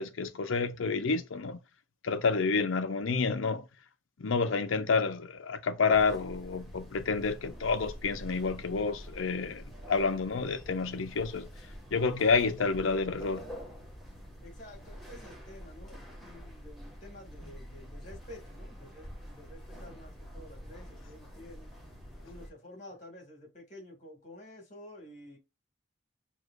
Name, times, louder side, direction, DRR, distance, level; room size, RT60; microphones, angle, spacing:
voice 1, 0.0-1.6 2.0-3.6 4.2-11.5 11.9-13.4, left 4 dB, 80° left, 0.6 m, -29 dB
sound 1, 5.9-22.5, equal, ahead, 1.2 m, -47 dB
voice 2, 14.4-21.7 22.2-25.4, left 1 dB, 35° left, 1.8 m, -50 dB
6.2 x 2.9 x 2.4 m
head